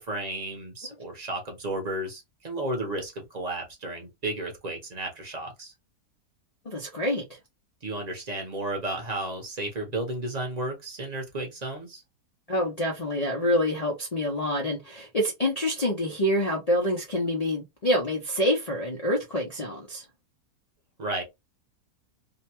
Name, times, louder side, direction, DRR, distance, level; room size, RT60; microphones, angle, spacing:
voice 1, 0.0-5.7 7.8-12.0 21.0-21.2, right 2 dB, 35° right, 0.7 m, -33 dB
voice 2, 6.6-7.4 12.5-20.0, left 1 dB, 75° left, 0.3 m, -27 dB
2.7 x 2.2 x 2.8 m
omnidirectional pair, 1.7 m